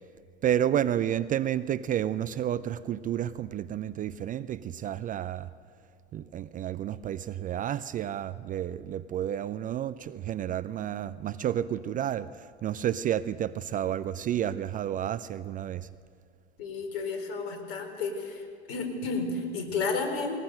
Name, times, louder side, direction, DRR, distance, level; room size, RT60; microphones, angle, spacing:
voice 1, 0.4-5.5 6.1-15.9, right 10 dB, 25° right, 15 dB, 0.5 m, -30 dB
voice 2, 16.6-18.4 18.7-20.4, left 4 dB, 60° left, 5 dB, 4.0 m, -32 dB
20.5 x 20.0 x 6.7 m, 2.4 s
hypercardioid pair, 85°, 33 cm